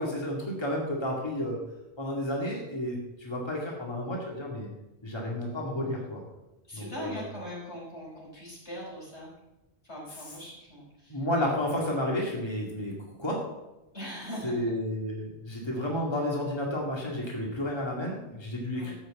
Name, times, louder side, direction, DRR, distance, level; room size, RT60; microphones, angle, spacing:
voice 1, 0.0-1.6 2.0-4.7 5.0-6.2 6.7-7.2 11.1-12.9 13.2-13.4 14.4-18.9, left 1 dB, 25° left, -2 dB, 2.2 m, -31 dB
voice 2, 6.6-9.3 9.8-11.3 13.9-14.7 18.7-18.9, equal, 85° left, -4 dB, 5.4 m, -41 dB
13.0 x 6.4 x 7.7 m, 0.98 s
omnidirectional pair, 1.1 m